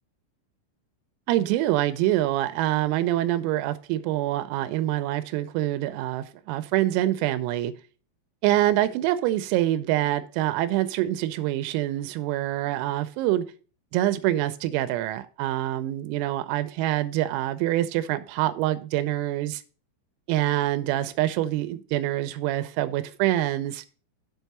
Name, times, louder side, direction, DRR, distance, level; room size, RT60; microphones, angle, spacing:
voice 1, 1.3-7.7 8.4-13.4 13.9-19.6 20.3-23.8, right 14 dB, 90° right, 3.3 m, -25 dB
7.7 x 4.6 x 5.4 m
omnidirectional pair, 6.0 m